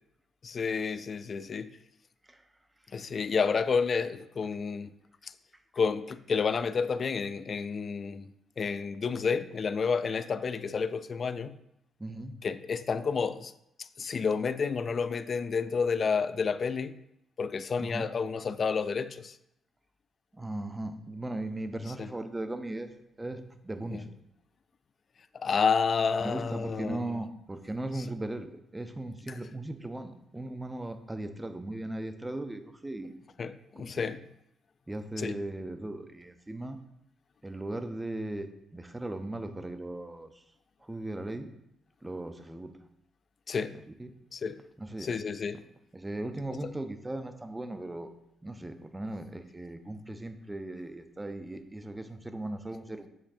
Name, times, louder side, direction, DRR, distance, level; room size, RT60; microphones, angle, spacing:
voice 1, 0.4-1.8 2.9-5.3 5.7-8.3 8.6-11.6 12.4-13.5 13.8-17.0 17.4-19.4 22.0-22.1 23.9-24.0 25.3-27.2 29.3-29.4 33.4-34.2 35.2-35.4 43.5-43.8 44.3-44.6 45.0-45.6 46.6-46.7, left 5 dB, 45° left, 0.3 m, -30 dB
voice 2, 12.0-12.3 17.8-18.1 20.3-24.1 26.2-33.2 33.8-34.1 34.9-36.8 37.4-40.4 40.8-41.5 42.0-42.7 43.7-44.1 44.8-45.1 45.9-48.1 48.4-53.1, right 1 dB, 15° right, 0.6 m, -38 dB
7.6 x 7.0 x 2.7 m
cardioid pair, 90°, 0 cm